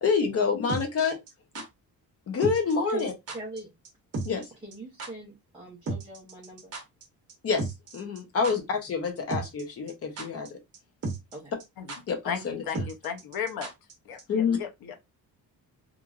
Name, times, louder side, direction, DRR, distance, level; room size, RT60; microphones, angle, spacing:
voice 1, 0.0-1.2 2.3-3.1 4.2-4.4 7.4-10.6 12.1-12.9 14.3-14.6, left 5 dB, 40° left, 0.7 m, -27 dB
sound 1, 0.7-1.7 2.4-2.7 3.0-3.1 3.3-3.6 3.8-3.9 4.1-4.5 4.7-4.8 5.0-5.1 5.9-7.0 7.3-7.4 7.6-8.2 8.4-8.5 9.3-9.6 9.9-10.5 10.7-10.8 11.0-11.3 11.6-11.7 11.9-12.0 12.7-13.9 14.2-14.3, right 2 dB, 40° right, 0.8 m, -34 dB
voice 2, 2.9-3.7 4.6-6.7 11.3-11.5, right 1 dB, 15° right, 0.6 m, -41 dB
voice 3, 12.3-13.7 14.1-14.2 14.6-14.9, left 7 dB, 80° left, 0.8 m, -34 dB
3.0 x 2.5 x 2.3 m
cardioid pair, 165°, 36 cm